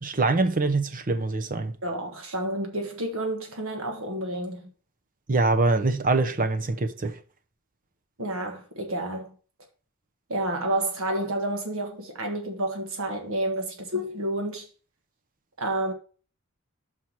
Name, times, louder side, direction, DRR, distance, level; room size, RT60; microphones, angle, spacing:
voice 1, 0.0-1.7 5.3-7.1, right 3 dB, 40° right, 0.8 m, -24 dB
voice 2, 1.8-4.7 8.2-9.3 10.3-14.6 15.6-15.9, right 1 dB, 65° right, 1.4 m, -30 dB
5.7 x 4.6 x 6.0 m
head